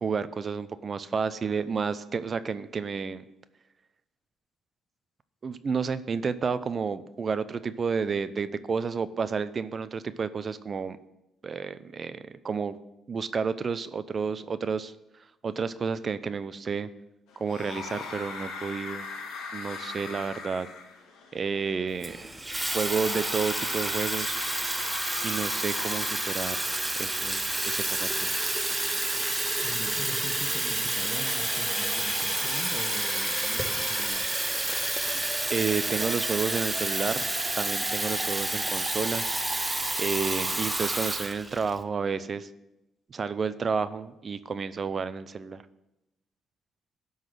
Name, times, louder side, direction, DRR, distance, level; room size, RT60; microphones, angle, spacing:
voice 1, 0.0-3.2 5.4-11.0 11.4-12.8 13.1-14.9 15.4-16.9 17.4-19.1 19.5-20.7 21.3-22.3 22.7-24.4 25.2-26.6 27.0-28.4 35.5-37.3 37.6-39.2 40.0-42.5 43.1-45.6, right 5 dB, 40° right, 13 dB, 0.5 m, -31 dB
sound 1, 17.3-34.1, left 4 dB, 85° left, 1.4 m, -41 dB
Water tap faucet / Fill (with liquid), 22.0-41.8, right 2 dB, 15° right, 0.8 m, -29 dB
sound 2, 27.1-41.6, left 1 dB, 10° left, 3.1 m, -49 dB
voice 2, 29.6-34.3, left 3 dB, 50° left, 10 dB, 0.9 m, -41 dB
11.5 x 4.0 x 7.6 m, 0.91 s
cardioid pair, 90°, 0 cm